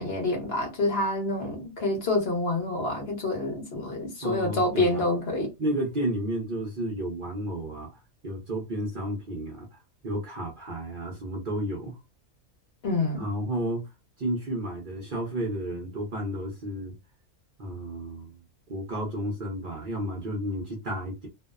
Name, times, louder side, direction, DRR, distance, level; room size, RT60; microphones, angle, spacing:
voice 1, 0.0-5.5 12.8-13.2, left 2 dB, 50° left, 1.1 m, -27 dB
voice 2, 4.2-5.0 5.6-9.7 10.0-12.0 13.2-13.9 14.2-16.9 17.6-18.4 18.7-21.3, right 1 dB, 45° right, 0.8 m, -32 dB
2.7 x 2.0 x 2.3 m
omnidirectional pair, 1.4 m